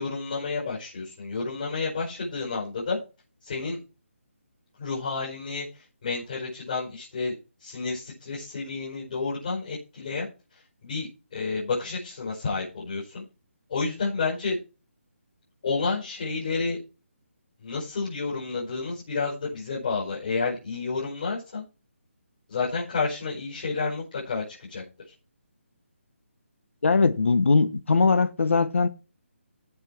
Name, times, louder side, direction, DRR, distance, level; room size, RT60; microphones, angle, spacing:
voice 1, 0.0-3.0 3.4-3.8 4.8-5.7 6.0-7.3 7.6-10.3 10.8-13.2 13.7-14.6 15.6-16.8 17.6-21.6 22.5-24.4 24.7-24.8, left 4 dB, 35° left, 5.4 m, -30 dB
voice 2, 26.8-28.9, left 4 dB, 65° left, 1.0 m, -21 dB
16.0 x 5.9 x 4.5 m
hypercardioid pair, 175°, 7 cm